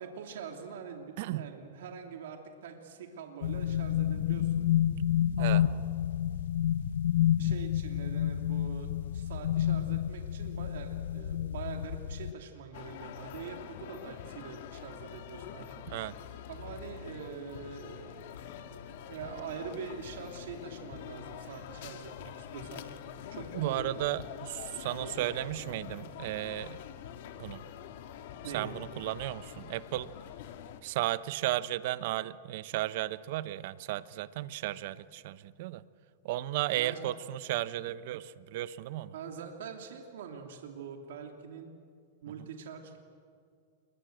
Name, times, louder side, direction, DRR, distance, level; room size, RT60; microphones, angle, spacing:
voice 1, 0.0-4.7 5.4-5.7 7.4-15.7 16.5-18.2 18.6-18.7 19.1-22.8 23.3-24.2 25.0-25.3 28.4-28.7 36.8-37.0 39.1-41.7 42.2-43.0, right 6 dB, 75° right, 3 dB, 2.8 m, -44 dB
sound 1, 3.4-12.3, left 11 dB, 85° left, 0.8 m, -29 dB
sound 2, 12.7-30.8, left 9 dB, 60° left, 2.0 m, -45 dB
voice 2, 23.5-26.8 27.4-27.6 28.5-30.1 30.8-35.8 36.2-39.1, right 15 dB, 55° right, 15 dB, 0.9 m, -34 dB
27.5 x 22.5 x 7.9 m, 2.2 s
supercardioid pair, 140°, 0 cm